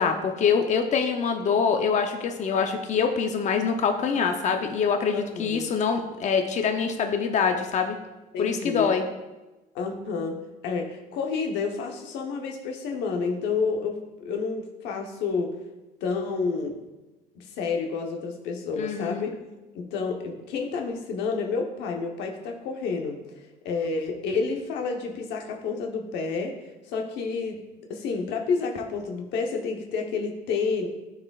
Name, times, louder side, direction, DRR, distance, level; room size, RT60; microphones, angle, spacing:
voice 1, 0.0-8.0 8.4-9.0 18.8-19.3, left 6 dB, 45° left, 5 dB, 0.7 m, -25 dB
voice 2, 5.1-5.7 8.3-8.9 9.7-15.5 16.0-16.8 17.4-19.3 19.7-23.2 23.6-26.6 26.9-27.6 27.9-30.9, left 4 dB, 90° left, 2 dB, 1.0 m, -29 dB
12.0 x 4.8 x 2.4 m, 1.1 s
cardioid pair, 110°, 17 cm